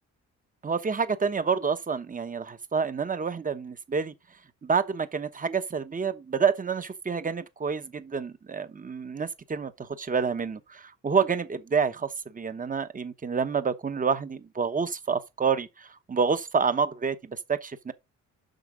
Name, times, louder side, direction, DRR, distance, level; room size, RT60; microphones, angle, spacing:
voice 1, 0.6-4.1 4.6-17.9, right 5 dB, 25° right, 1.0 m, -28 dB
7.9 x 5.8 x 5.0 m
cardioid pair, 75°, 31 cm